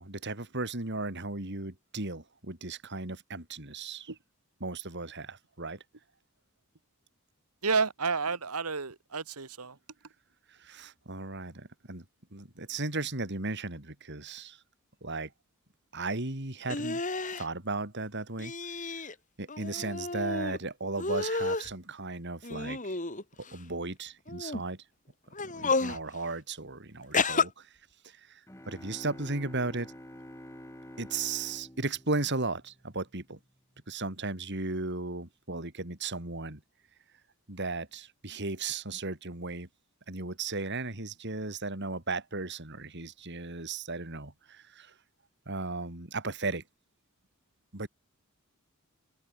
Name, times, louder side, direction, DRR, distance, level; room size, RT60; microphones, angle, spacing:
voice 1, 0.0-4.1 4.6-5.8 10.5-12.0 12.3-14.6 15.0-15.3 15.9-17.0 17.4-18.5 19.4-23.0 23.5-24.8 25.4-27.7 28.0-28.4 28.7-29.9 31.0-33.4 33.9-36.6 37.5-39.7 40.1-44.9 45.5-46.6 47.7-47.9, right 3 dB, 50° right, 3.4 m, -36 dB
voice 2, 7.6-9.8, right 4 dB, 85° right, 1.8 m, -30 dB
sound 1, 16.7-17.4 18.4-19.1 19.5-20.6 21.0-21.7 22.4-23.5 24.3-24.6 25.3-26.0 27.1-27.5, left 3 dB, 35° left, 4.2 m, -31 dB
sound 2, 28.5-33.1, equal, 15° left, 6.4 m, -48 dB
head